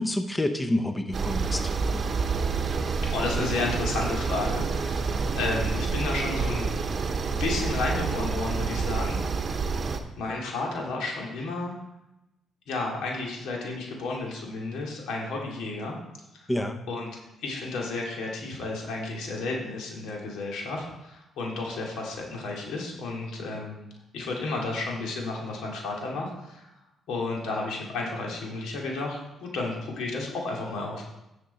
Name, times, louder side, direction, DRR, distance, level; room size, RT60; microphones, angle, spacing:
voice 1, 0.0-1.7 16.5-16.8, left 1 dB, 15° left, 7 dB, 0.8 m, -28 dB
sound 1, 1.1-10.0, right 5 dB, 45° right, 0.9 m, -28 dB
voice 2, 3.0-6.7 7.4-9.7 10.2-11.7 12.7-16.0 16.9-17.1 17.4-23.8 24.1-26.7 27.1-31.0, left 3 dB, 80° left, -1 dB, 2.3 m, -32 dB
10.0 x 6.8 x 4.1 m, 0.91 s
cardioid pair, 90°, 0 cm